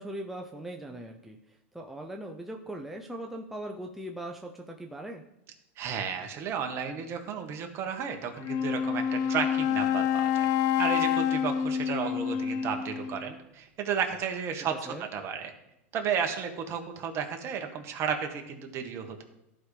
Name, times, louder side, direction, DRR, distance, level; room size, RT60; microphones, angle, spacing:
voice 1, 0.0-5.2 14.9-15.1, right 1 dB, 5° right, 1 dB, 0.6 m, -40 dB
voice 2, 5.8-10.5 10.8-15.5 15.9-19.2, right 7 dB, 35° right, 5 dB, 1.4 m, -33 dB
Wind instrument woodwind instrument, 8.4-13.3, left 8 dB, 45° left, 0.6 m, -28 dB
14.0 x 5.0 x 3.3 m, 0.87 s
hypercardioid pair, 120°, 7 cm